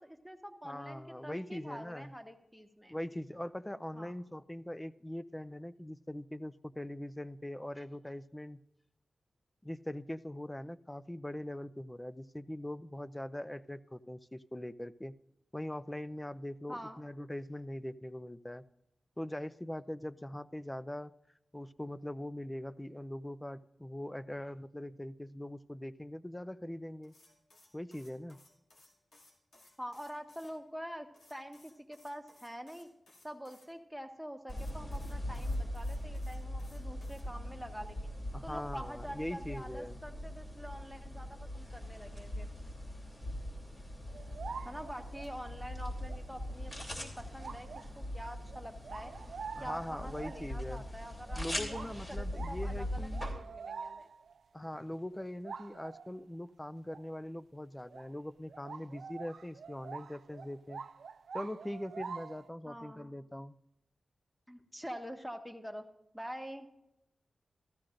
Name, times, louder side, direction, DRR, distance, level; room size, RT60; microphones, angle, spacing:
voice 1, 0.0-2.9 3.9-4.1 16.7-17.0 29.8-32.9 33.2-38.1 38.4-42.5 44.6-47.7 47.9-49.1 49.6-54.1 62.6-63.1 64.5-65.9 66.1-66.7, equal, ahead, 4 dB, 1.4 m, -46 dB
voice 2, 0.6-2.1 2.9-8.6 9.6-15.1 15.5-18.6 19.2-21.1 21.5-27.1 27.7-28.4 38.3-40.0 49.6-50.8 51.3-53.2 54.5-60.8 61.3-63.6, left 1 dB, 15° left, 16 dB, 0.5 m, -42 dB
sound 1, 27.0-30.5 31.1-33.7 34.5-37.2, left 2 dB, 80° left, 2.4 m, -62 dB
sound 2, 34.5-53.3, left 1 dB, 40° left, 3.2 m, -41 dB
sound 3, 44.1-45.4 46.0-46.2 46.7-46.9 47.4-48.1 48.5-50.7 51.3-51.4 51.7-54.4 54.7-54.8 55.1-56.2 56.9-57.1 57.9-58.1 58.5-62.5, right 5 dB, 80° right, 0.4 m, -46 dB
14.5 x 14.0 x 2.6 m, 0.85 s
cardioid pair, 50°, 0 cm